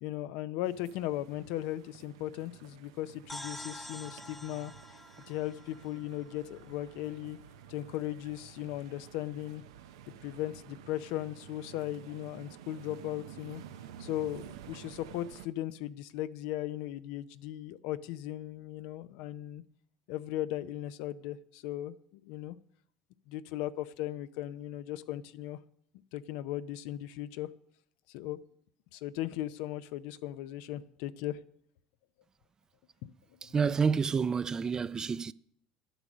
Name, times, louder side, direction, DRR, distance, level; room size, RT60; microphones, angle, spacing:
voice 1, 0.0-4.7 5.3-7.4 7.7-9.6 10.2-13.6 14.0-19.6 20.1-22.6 23.3-25.6 26.1-27.5 28.1-28.4 28.9-31.4 33.4-33.5, left 13 dB, 75° left, 0.5 m, -37 dB
sound 1, 0.6-15.5, right 10 dB, 85° right, 0.6 m, -51 dB
sound 2, 3.3-6.9, left 1 dB, 5° left, 0.8 m, -47 dB
voice 2, 33.4-35.3, right 6 dB, 30° right, 0.4 m, -29 dB
11.0 x 8.0 x 6.1 m
supercardioid pair, 85°, 2 cm